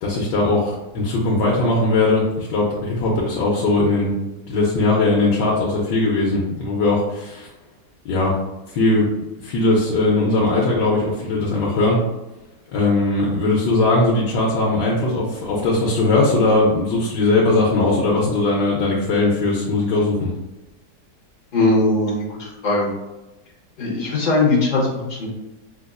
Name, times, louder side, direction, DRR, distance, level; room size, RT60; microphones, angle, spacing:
voice 1, 0.0-4.2 4.5-7.5 8.0-8.3 8.7-9.1 9.4-12.0 12.7-20.3, left 2 dB, 85° left, -5 dB, 1.3 m, -19 dB
voice 2, 21.5-22.9 23.8-25.3, left 2 dB, 65° left, -3 dB, 0.4 m, -20 dB
4.9 x 2.4 x 2.3 m, 1.0 s
omnidirectional pair, 1.9 m